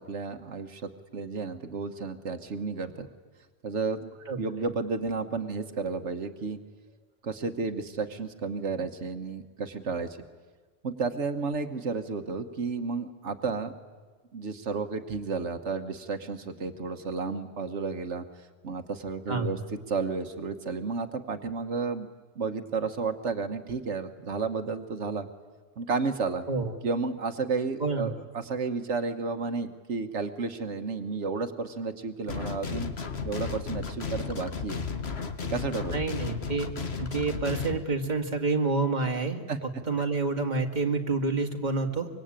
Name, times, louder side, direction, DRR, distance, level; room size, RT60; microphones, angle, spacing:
voice 1, 0.0-3.1 3.6-4.1 4.4-6.6 7.2-10.2 10.8-13.7 14.3-18.2 18.6-22.1 22.3-25.3 25.8-26.4 26.8-32.9 33.2-34.8 35.5-36.0 39.5-39.6, right 4 dB, 90° right, 7 dB, 1.5 m, -32 dB
voice 2, 27.8-28.1 35.9-36.7 37.0-39.4 39.9-42.1, right 3 dB, 40° right, 3 dB, 2.1 m, -28 dB
sound 1, 32.3-37.8, left 5 dB, 65° left, 1.8 m, -34 dB
25.0 x 23.0 x 8.9 m, 1.4 s
omnidirectional pair, 1.2 m